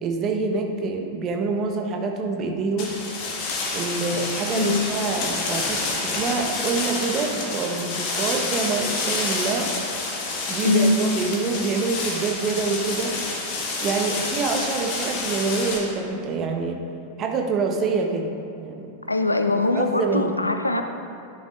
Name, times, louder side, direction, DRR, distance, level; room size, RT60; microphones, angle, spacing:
voice 1, 0.0-3.0 3.7-9.7 10.5-13.2 13.8-16.8 17.2-18.3 18.6-18.9 19.7-20.4, right 4 dB, 30° right, 3 dB, 1.0 m, -26 dB
sound 1, 2.8-15.8, left 3 dB, 45° left, 1.8 m, -28 dB
voice 2, 4.5-4.9 10.6-11.0 19.1-20.8, left 2 dB, 85° left, 7 dB, 0.5 m, -22 dB
12.0 x 10.0 x 2.5 m, 2.6 s
figure-of-eight pair, 90°, 0 cm